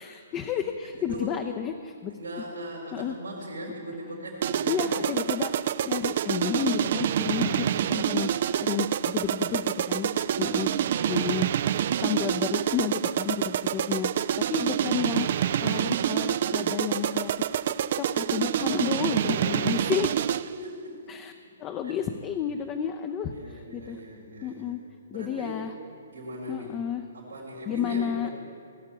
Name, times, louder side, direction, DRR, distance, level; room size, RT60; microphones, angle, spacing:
voice 1, 0.0-2.1 2.9-3.1 4.7-10.1 10.4-10.7 11.0-11.5 11.9-14.1 14.5-17.3 18.0-20.3 21.1-21.3 21.6-24.0 24.4-24.8 25.1-25.7 26.5-27.0 27.7-28.3, left 8 dB, 25° left, 6 dB, 0.6 m, -31 dB
voice 2, 0.9-1.4 2.1-5.1 5.7-5.8 18.9-19.9 20.4-21.1 21.8-22.0 23.3-24.8 25.1-25.6 26.1-26.8 27.1-28.4, equal, 85° right, -6 dB, 3.9 m, -40 dB
sound 1, 4.4-20.6, right 10 dB, 55° right, 0.4 m, -27 dB
18.0 x 6.6 x 8.4 m, 2.4 s
hypercardioid pair, 130°, 0 cm